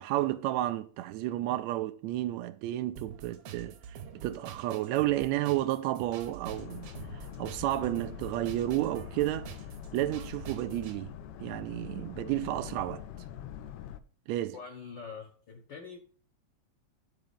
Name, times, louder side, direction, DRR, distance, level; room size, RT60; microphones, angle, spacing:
voice 1, 0.0-9.5 9.9-11.1 11.4-13.0 14.3-14.5, right 15 dB, 80° right, 1.7 m, -32 dB
sound 1, 3.0-11.0, right 7 dB, 65° right, 1.7 m, -46 dB
Boat Water vehicle, 6.5-14.0, left 9 dB, 80° left, 1.3 m, -44 dB
voice 2, 14.5-16.0, left 5 dB, 60° left, 1.2 m, -44 dB
10.5 x 4.2 x 7.0 m
omnidirectional pair, 3.3 m